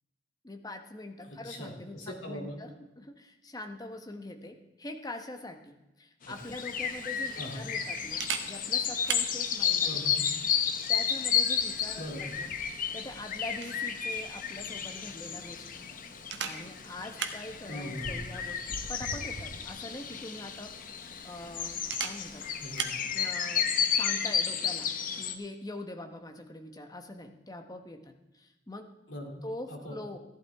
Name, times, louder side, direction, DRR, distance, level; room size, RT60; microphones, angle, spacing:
voice 1, 0.4-9.9 10.9-12.5 12.9-15.8 16.4-20.7 21.2-22.5 23.1-23.7 23.9-28.9 29.4-30.2, left 2 dB, 20° left, 5 dB, 1.0 m, -43 dB
voice 2, 1.2-2.6 6.2-6.3 7.4-7.7 9.8-10.3 12.0-12.4 17.7-18.2 22.4-22.9 29.1-29.4 29.7-30.0, equal, 80° left, 1 dB, 2.8 m, -40 dB
sound 1, 6.2-25.3, left 7 dB, 45° left, 0.8 m, -32 dB
Camera, 6.3-23.0, right 6 dB, 65° right, 1.1 m, -43 dB
14.5 x 11.5 x 3.5 m, 1.0 s
head